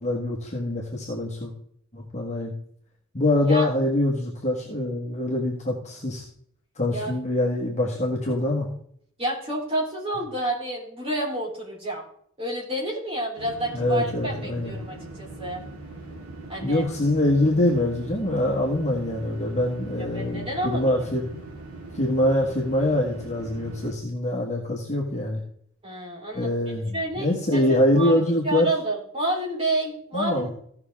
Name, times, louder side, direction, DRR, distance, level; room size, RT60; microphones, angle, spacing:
voice 1, 0.0-1.5 1.9-2.5 3.1-6.2 6.8-8.7 13.7-14.7 16.6-21.3 21.9-25.4 26.3-28.7 30.1-30.5, left 1 dB, 35° left, -2 dB, 1.6 m, -24 dB
voice 2, 9.2-12.0 12.4-15.6 16.5-16.9 20.0-21.1 25.8-26.6 26.9-28.2 28.4-30.5, right 1 dB, 25° right, -4 dB, 3.6 m, -29 dB
sound 1, 13.4-23.9, right 2 dB, 70° right, 2.5 m, -40 dB
15.5 x 5.9 x 3.6 m, 0.64 s
head